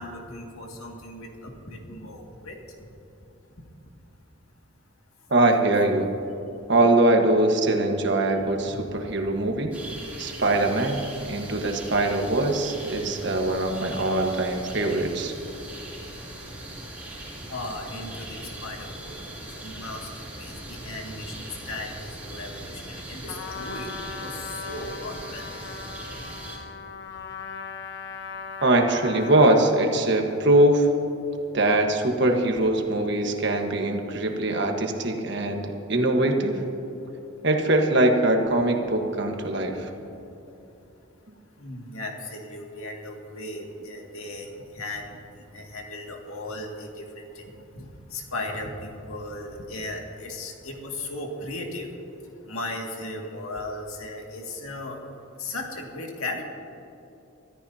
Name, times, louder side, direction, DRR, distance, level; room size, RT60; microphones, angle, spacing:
voice 1, 0.0-2.6 8.7-9.0 17.5-20.1 20.4-23.9 24.2-25.4 39.8-39.9 41.6-44.5 44.7-45.2 45.5-47.4 47.8-51.9 52.5-55.0 55.4-56.4, left 2 dB, 80° left, 0 dB, 2.1 m, -36 dB
voice 2, 5.3-6.1 6.7-9.7 10.2-11.0 11.3-15.3 28.6-30.9 31.5-36.6 37.4-39.9, right 2 dB, 55° right, 3 dB, 1.4 m, -22 dB
sound 1, 9.7-26.6, right 1 dB, 10° right, 3.0 m, -40 dB
Trumpet, 23.3-29.9, left 5 dB, 55° left, 1.1 m, -38 dB
25.0 x 13.5 x 2.8 m, 2.9 s
head